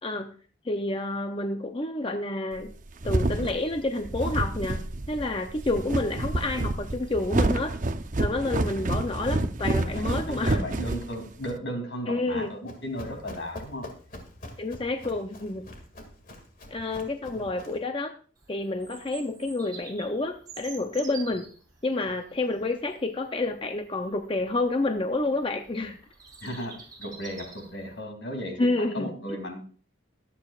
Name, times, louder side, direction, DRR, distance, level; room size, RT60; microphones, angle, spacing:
voice 1, 0.6-2.7 3.0-7.7 8.2-10.7 12.1-12.5 14.6-15.6 16.7-18.1 18.5-21.4 21.8-26.0 28.6-29.1, left 2 dB, 30° left, 6 dB, 0.6 m, -29 dB
sound 1, 2.6-11.6, right 2 dB, 45° right, 0.7 m, -28 dB
voice 2, 9.6-13.9 17.3-17.5 26.4-29.6, equal, 75° left, 5 dB, 2.7 m, -36 dB
Run, 12.3-17.9, left 1 dB, 45° left, 2.2 m, -45 dB
Bird vocalization bird call bird song, 18.4-28.0, right 5 dB, 20° right, 4.8 m, -48 dB
22.5 x 8.6 x 2.4 m, 0.41 s
head